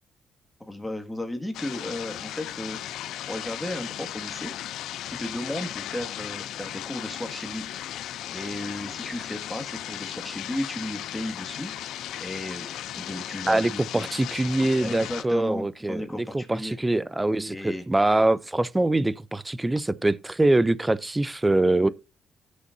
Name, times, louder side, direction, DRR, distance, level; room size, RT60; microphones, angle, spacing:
voice 1, 0.6-4.5 5.1-7.6 8.3-14.1 14.8-16.8 17.5-17.8, left 1 dB, 10° left, 2.1 m, -34 dB
sound 1, 1.5-15.2, left 12 dB, 80° left, 0.5 m, -36 dB
voice 2, 13.5-21.9, right 2 dB, 15° right, 0.6 m, -24 dB
17.0 x 6.5 x 2.7 m
cardioid pair, 90°, 0 cm